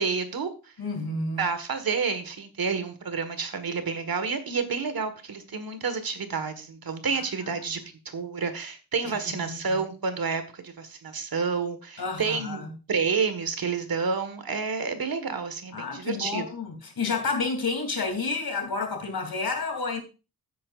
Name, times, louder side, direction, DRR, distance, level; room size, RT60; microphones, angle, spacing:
voice 1, 0.0-0.7 1.4-16.5, right 5 dB, 65° right, 1.6 m, -29 dB
voice 2, 0.8-1.5 7.1-7.6 9.0-9.8 12.0-12.7 15.7-20.0, left 4 dB, 65° left, 3.1 m, -30 dB
15.5 x 8.8 x 2.5 m
wide cardioid pair, 180°, 39 cm